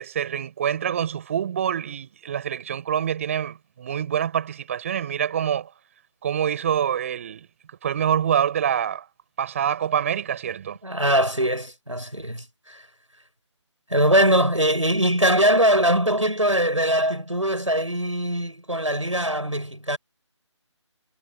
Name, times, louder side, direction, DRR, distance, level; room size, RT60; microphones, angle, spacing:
voice 1, 0.0-5.7 6.2-7.5 7.8-9.1 9.4-10.8, right 9 dB, 25° right, 5.7 m, -26 dB
voice 2, 10.8-12.8 13.9-20.0, right 1 dB, 90° right, 6.4 m, -22 dB
figure-of-eight pair, 155°, 16 cm